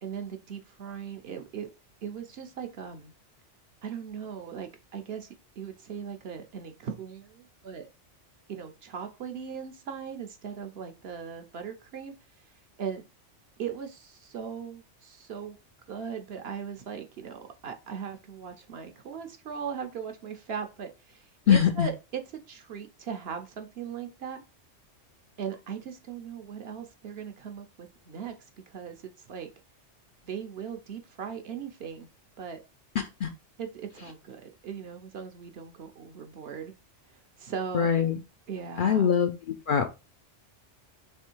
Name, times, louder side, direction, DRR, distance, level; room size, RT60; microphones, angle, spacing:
voice 1, 0.0-1.7 2.0-3.1 3.8-5.3 5.6-7.9 8.5-12.1 12.8-13.0 13.6-15.6 15.9-24.4 25.4-29.5 30.2-32.1 32.4-32.6 33.6-36.7 37.4-37.9 38.5-39.2, right 7 dB, 60° right, 6 dB, 0.9 m, -39 dB
voice 2, 21.5-21.9 33.2-33.3 37.7-38.2 38.8-39.3 39.7-39.9, left 8 dB, 60° left, 5 dB, 0.6 m, -22 dB
3.4 x 3.1 x 4.4 m, 0.28 s
omnidirectional pair, 1.2 m